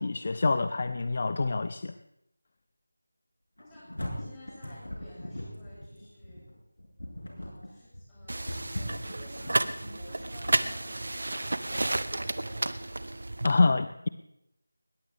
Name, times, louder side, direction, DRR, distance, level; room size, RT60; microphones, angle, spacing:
voice 1, 0.0-1.9 13.4-14.1, left 3 dB, 40° left, 11 dB, 0.6 m, -26 dB
sound 1, 3.6-10.8, left 1 dB, 85° left, 6.9 m, -40 dB
voice 2, 3.6-6.6 7.3-12.8, left 1 dB, 10° left, -9 dB, 7.5 m, -52 dB
sound 2, 8.3-13.5, right 2 dB, 60° right, 0.9 m, -32 dB
21.0 x 19.0 x 3.5 m, 0.84 s
figure-of-eight pair, 170°, 0 cm